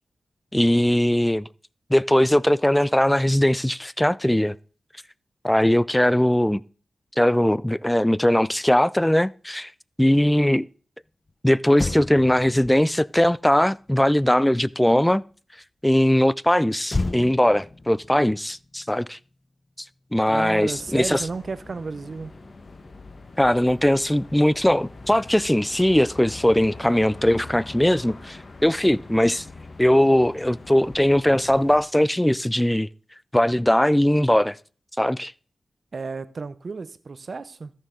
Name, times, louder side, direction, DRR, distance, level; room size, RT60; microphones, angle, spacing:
voice 1, 0.5-1.5 1.9-4.5 5.4-6.6 7.2-9.7 10.0-10.7 11.4-15.2 15.8-19.2 20.1-21.2 23.4-29.5 29.8-32.9 33.3-34.6 35.0-35.3, left 1 dB, 10° left, 0.4 m, -20 dB
Motor vehicle (road), 11.3-11.4 11.7-15.2 16.9-19.5 19.7-20.0, left 2 dB, 35° left, 0.9 m, -34 dB
voice 2, 20.3-22.4 35.9-37.7, right 4 dB, 60° right, 0.7 m, -33 dB
sound 1, 20.6-31.8, left 3 dB, 55° left, 1.4 m, -43 dB
14.0 x 6.4 x 3.8 m
cardioid pair, 55°, 0 cm